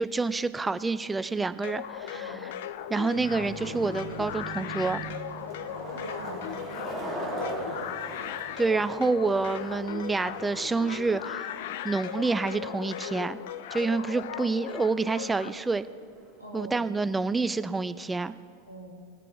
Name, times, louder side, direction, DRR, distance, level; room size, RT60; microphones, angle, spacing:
voice 1, 0.0-2.4 2.9-5.0 8.6-11.5 11.8-13.4 13.7-15.9 16.5-18.3, right 3 dB, 10° right, 14 dB, 0.3 m, -28 dB
sound 1, 1.6-15.5, left 11 dB, 55° left, 0.4 m, -38 dB
Skateboard, 1.6-16.5, equal, 10° left, 3.3 m, -42 dB
voice 2, 2.1-2.5 5.9-8.2 16.4-16.9 18.7-18.9, right 1 dB, 90° left, -3 dB, 2.4 m, -43 dB
sound 2, 3.1-11.2, right 4 dB, 75° right, 1.2 m, -45 dB
19.0 x 6.7 x 4.8 m, 2.3 s
figure-of-eight pair, 90°, 0 cm